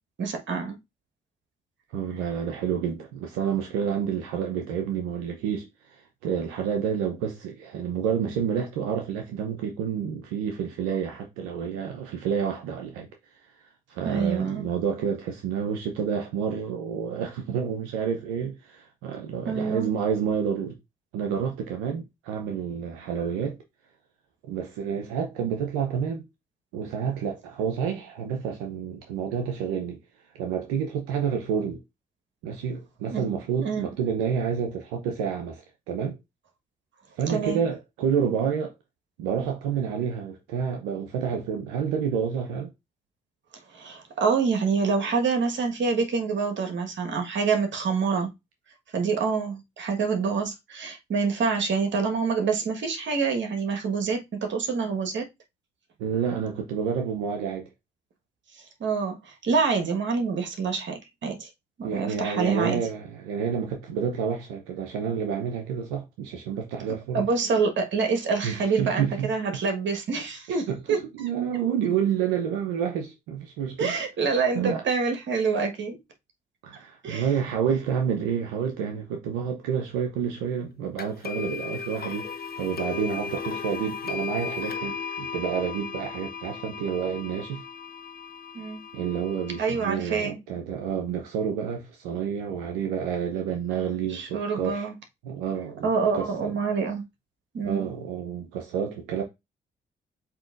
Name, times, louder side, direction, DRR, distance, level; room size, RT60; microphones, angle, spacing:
voice 1, 0.2-0.8 14.0-14.6 19.4-19.9 33.1-33.2 33.6-33.9 37.3-37.6 43.7-48.3 48.9-55.3 58.8-61.5 61.8-62.8 67.1-71.0 73.8-76.0 77.0-77.3 88.5-88.8 89.6-90.4 94.1-94.9 95.8-97.0 97.5-97.9, right 5 dB, 60° right, 1.4 m, -26 dB
voice 2, 1.9-13.1 13.4-20.8 21.1-23.6 24.4-26.3 26.7-30.0 30.4-31.8 32.4-36.2 37.2-38.7 39.2-42.7 56.0-57.7 61.8-67.2 68.4-69.3 70.5-74.0 74.5-74.8 76.6-82.3 82.6-87.6 88.9-94.9 95.2-96.6 97.6-99.2, right 7 dB, 90° right, 0.6 m, -29 dB
sound 1, 81.0-89.8, left 6 dB, 50° left, 0.9 m, -36 dB
7.4 x 2.9 x 2.5 m
hypercardioid pair, 45°, 21 cm